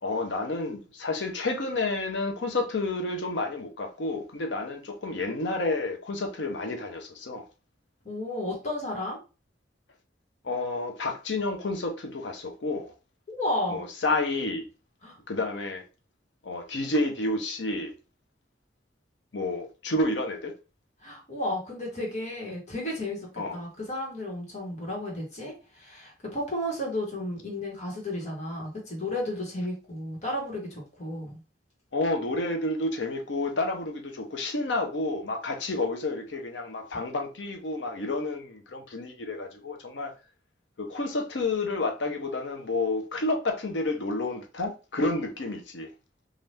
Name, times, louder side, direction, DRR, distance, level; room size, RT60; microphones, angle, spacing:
voice 1, 0.0-7.4 10.4-12.9 13.7-14.7 15.3-15.8 16.4-17.9 19.3-20.5 23.4-23.6 31.9-40.1 40.8-45.9, left 2 dB, 85° left, 0.7 m, -30 dB
voice 2, 8.0-9.2 13.3-13.8 15.0-15.1 21.0-31.4, left 1 dB, 40° left, 1.4 m, -33 dB
2.8 x 2.5 x 3.3 m
head